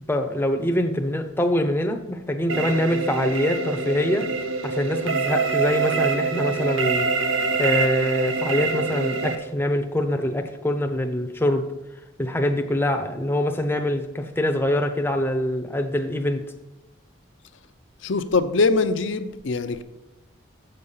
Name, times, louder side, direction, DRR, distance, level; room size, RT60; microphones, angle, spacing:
voice 1, 0.1-4.3 4.6-11.7 12.2-16.4, left 1 dB, 10° left, 5 dB, 0.6 m, -24 dB
sound 1, 2.5-9.4, right 4 dB, 85° right, 0.8 m, -25 dB
voice 2, 18.0-19.8, left 3 dB, 70° left, 10 dB, 0.6 m, -22 dB
7.5 x 6.7 x 5.6 m, 1.0 s
head